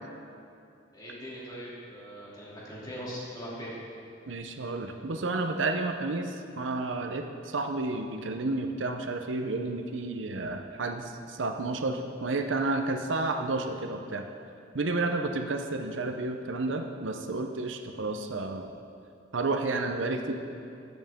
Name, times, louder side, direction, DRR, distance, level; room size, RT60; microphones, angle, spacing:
voice 1, 0.9-3.7 14.8-15.1, equal, 20° left, -7 dB, 2.7 m, -41 dB
voice 2, 4.3-14.3 14.7-18.8 19.3-20.3, right 3 dB, 85° right, 5 dB, 0.7 m, -31 dB
14.5 x 8.0 x 3.6 m, 2.6 s
head